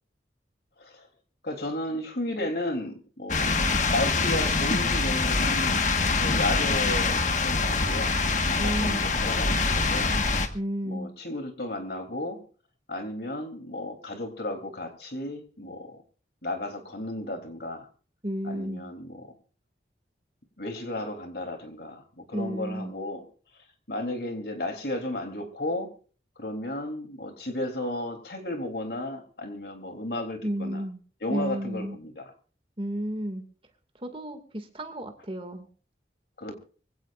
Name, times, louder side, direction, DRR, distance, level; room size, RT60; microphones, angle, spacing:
voice 1, 1.4-8.2 8.5-10.1 10.8-12.4 12.9-16.0 16.4-17.9 18.4-19.3 20.6-23.3 23.9-25.9 26.4-30.8 31.2-32.3 36.4-36.5, left 1 dB, 60° left, 3.3 m, -34 dB
sound 1, 3.3-10.5, left 3 dB, 45° left, 1.5 m, -24 dB
voice 2, 8.6-9.1 10.5-11.1 18.2-18.9 22.3-22.9 30.4-31.0 31.3-32.0 32.8-33.4 34.0-35.7, equal, 30° right, 2.2 m, -32 dB
24.5 x 16.5 x 2.5 m
head